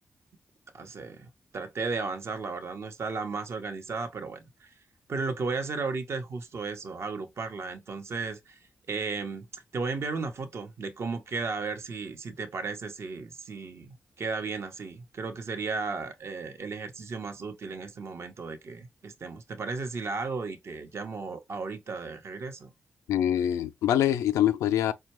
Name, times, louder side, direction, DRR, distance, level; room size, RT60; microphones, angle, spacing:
voice 1, 0.7-4.7 5.1-8.6 8.9-22.7, right 4 dB, 60° right, 0.8 m, -35 dB
voice 2, 23.1-24.9, left 11 dB, 90° left, 0.3 m, -24 dB
4.5 x 2.2 x 3.0 m
supercardioid pair, 40°, 5 cm